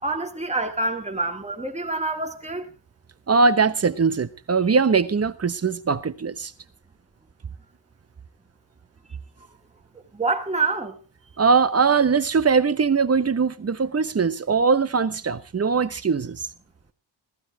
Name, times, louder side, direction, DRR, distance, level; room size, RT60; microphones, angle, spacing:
voice 1, 0.0-2.7 9.9-11.0, right 3 dB, 15° right, 2.0 m, -27 dB
voice 2, 3.3-6.5 11.4-16.4, right 5 dB, 35° right, 1.0 m, -21 dB
15.0 x 15.0 x 4.7 m
wide cardioid pair, 115°, 45 cm